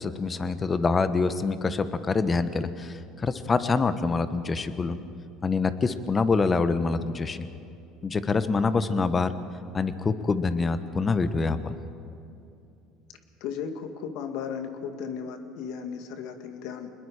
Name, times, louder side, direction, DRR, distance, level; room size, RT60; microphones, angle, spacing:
voice 1, 0.0-5.0 5.4-7.5 8.0-9.3 9.7-11.8, left 4 dB, 30° left, 11 dB, 1.3 m, -26 dB
voice 2, 13.4-16.9, left 7 dB, 70° left, 6 dB, 2.1 m, -35 dB
26.5 x 21.0 x 5.0 m, 2.7 s
supercardioid pair, 85°, 0 cm